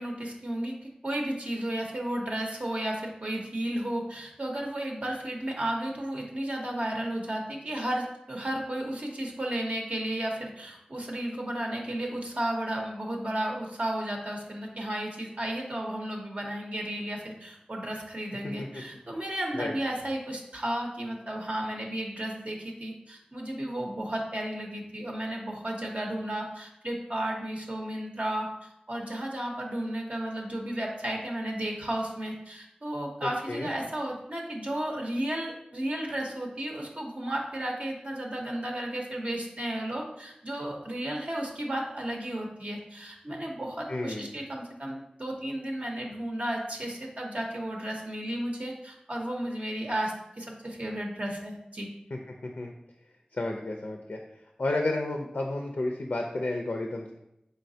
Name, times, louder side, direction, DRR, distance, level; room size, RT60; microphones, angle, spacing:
voice 1, 0.0-28.5 28.9-51.9, right 1 dB, 50° right, 0 dB, 0.6 m, -33 dB
voice 2, 43.9-44.3 52.1-52.7 53.4-54.2 54.6-57.1, left 2 dB, 70° left, 2 dB, 0.4 m, -31 dB
3.9 x 3.2 x 2.6 m, 0.83 s
wide cardioid pair, 40°, 3 cm